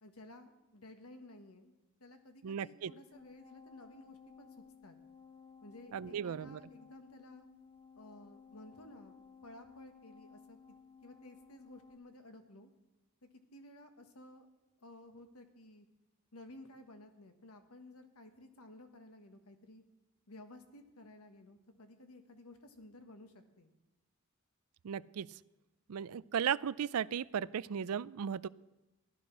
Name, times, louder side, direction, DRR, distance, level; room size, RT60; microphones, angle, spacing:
voice 1, 0.0-1.7 2.0-5.0 5.6-7.5 7.9-10.8 11.0-12.7 13.2-14.5 14.8-15.9 16.3-19.8 20.3-23.7, left 1 dB, 80° left, 7 dB, 1.5 m, -55 dB
voice 2, 2.4-2.9 5.9-6.6 24.8-25.3 25.9-28.5, right 8 dB, 80° right, 19 dB, 0.4 m, -36 dB
sound 1, 3.1-12.0, left 6 dB, 25° left, 0.8 m, -58 dB
15.0 x 11.5 x 6.1 m, 1.0 s
head